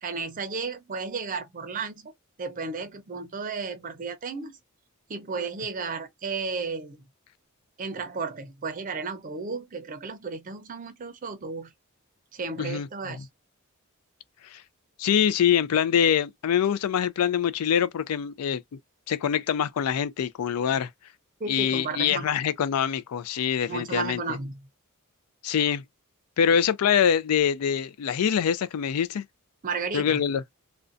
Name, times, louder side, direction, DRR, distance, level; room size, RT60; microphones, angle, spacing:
voice 1, 0.0-2.1 2.4-4.6 5.1-7.0 7.8-11.7 12.3-13.3 21.4-22.3 23.7-24.6 29.6-30.2, right 4 dB, 35° right, 0.5 m, -33 dB
voice 2, 12.6-13.2 14.5-14.6 15.0-18.6 19.1-20.9 21.5-24.2 25.4-25.8 26.4-29.2 29.9-30.4, left 8 dB, 90° left, 0.4 m, -24 dB
2.4 x 2.1 x 2.5 m
head